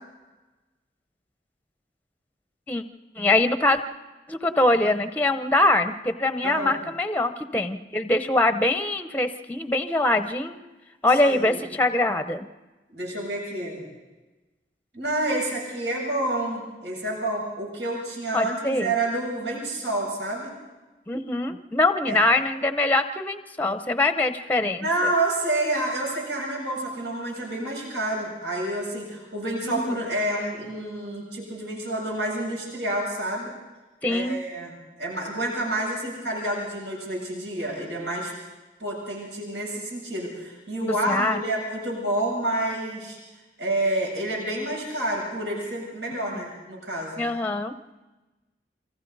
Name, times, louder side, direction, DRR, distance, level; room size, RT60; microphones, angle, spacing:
voice 1, 3.2-3.8 4.3-10.6 11.0-12.5 18.3-18.9 21.1-25.1 29.6-30.0 34.0-34.4 40.8-41.4 46.3-46.4 47.2-47.7, left 2 dB, 10° left, 9 dB, 0.8 m, -23 dB
voice 2, 6.4-6.8 11.3-11.6 12.9-13.8 14.9-20.5 22.1-22.2 24.8-33.5 34.1-34.7 35.0-38.3 38.8-43.2 43.6-47.2, right 1 dB, 85° right, -3 dB, 7.9 m, -28 dB
28.5 x 24.5 x 4.1 m, 1.2 s
head